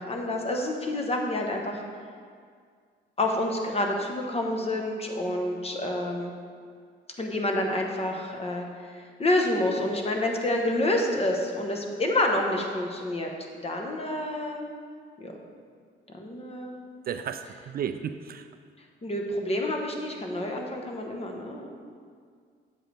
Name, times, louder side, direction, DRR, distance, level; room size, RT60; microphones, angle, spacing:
voice 1, 0.0-1.8 3.2-6.3 7.2-13.3 13.6-14.7 15.2-15.3 16.1-16.8 19.0-21.7, left 1 dB, 30° left, 1 dB, 1.1 m, -28 dB
voice 2, 17.1-18.5, right 8 dB, 50° right, 9 dB, 0.4 m, -33 dB
7.7 x 7.6 x 3.4 m, 2.1 s
cardioid pair, 90°, 20 cm